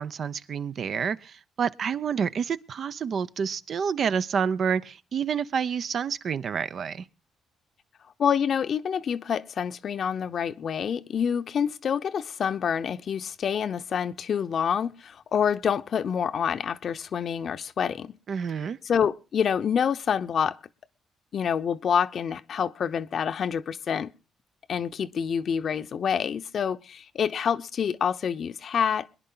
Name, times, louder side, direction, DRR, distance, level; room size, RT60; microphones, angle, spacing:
voice 1, 0.0-7.0 18.3-18.8, right 7 dB, 55° right, 0.6 m, -28 dB
voice 2, 8.2-18.1 18.8-20.6 21.3-24.1 24.7-29.1, left 7 dB, 55° left, 0.7 m, -27 dB
23.0 x 10.5 x 3.9 m
cardioid pair, 90°, 0 cm